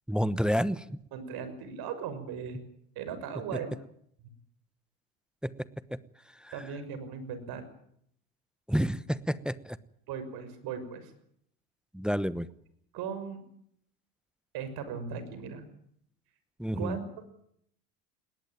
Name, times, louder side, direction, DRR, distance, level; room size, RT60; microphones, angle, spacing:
voice 1, 0.1-1.0 5.4-5.5 5.9-6.0 6.4-6.6 8.7-9.8 11.9-12.5 16.6-17.0, equal, ahead, 16 dB, 1.0 m, -29 dB
voice 2, 1.1-2.6 3.0-3.7 6.5-7.6 10.1-11.1 12.9-13.4 14.5-15.6 16.8-17.0, right 7 dB, 55° right, 11 dB, 6.2 m, -38 dB
21.0 x 18.0 x 9.2 m, 0.70 s
hypercardioid pair, 85°, 43 cm